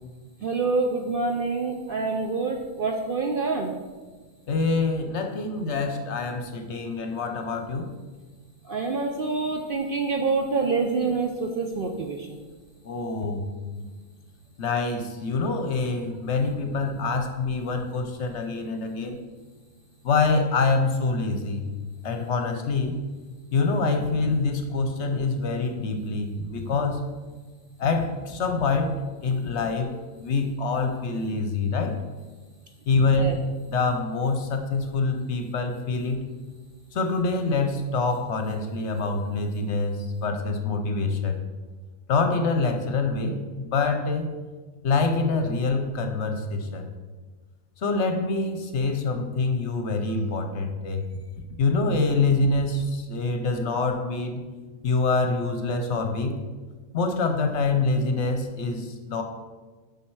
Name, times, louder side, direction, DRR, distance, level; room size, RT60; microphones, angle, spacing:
voice 1, 0.4-3.7 8.7-12.3 33.2-33.4, right 4 dB, 55° right, 3 dB, 0.6 m, -26 dB
voice 2, 4.5-7.9 12.8-13.5 13.8-13.9 14.6-19.2 20.0-21.7 22.0-23.0 23.5-27.0 27.8-29.9 30.2-32.0 32.9-33.4 33.7-36.2 36.9-41.4 42.1-44.3 44.8-46.9 47.8-51.0 51.6-54.4 54.8-56.4 56.9-59.2, left 3 dB, 60° left, 6 dB, 1.0 m, -25 dB
7.4 x 5.5 x 4.6 m, 1.4 s
omnidirectional pair, 1.5 m